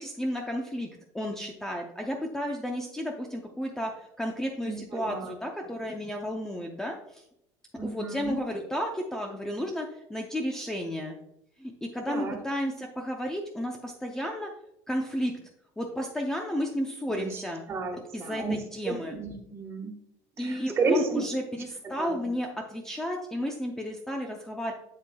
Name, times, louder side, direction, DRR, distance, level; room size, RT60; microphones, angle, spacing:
voice 1, 0.0-7.2 7.8-11.1 11.6-14.5 14.9-15.3 15.8-17.6 18.1-19.2 20.4-24.7, equal, 5° left, 2 dB, 0.6 m, -32 dB
voice 2, 4.6-5.3 7.8-8.4 12.1-12.4 17.1-19.9 20.4-21.2 22.0-22.3, right 3 dB, 30° right, 3 dB, 1.4 m, -32 dB
7.7 x 7.4 x 2.3 m, 0.78 s
cardioid pair, 140°, 9 cm